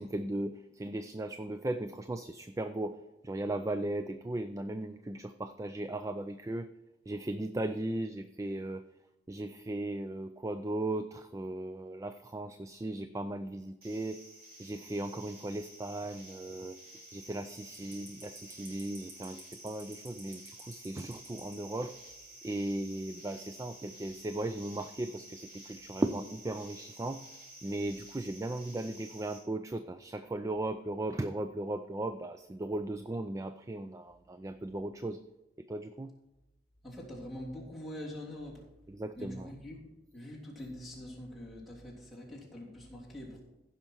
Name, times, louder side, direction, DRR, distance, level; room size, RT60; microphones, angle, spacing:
voice 1, 0.0-3.0 3.2-6.7 7.1-8.8 9.3-14.2 14.6-16.8 17.1-21.9 22.4-27.2 27.6-35.2 35.7-36.1 38.9-39.5, right 1 dB, 15° right, 10 dB, 0.3 m, -37 dB
sound 1, 13.8-29.4, right 1 dB, 50° right, 3.2 m, -51 dB
voice 2, 36.8-38.6 39.1-39.8 40.1-43.4, left 1 dB, ahead, -7 dB, 3.1 m, -44 dB
15.5 x 5.8 x 4.6 m, 1.0 s
head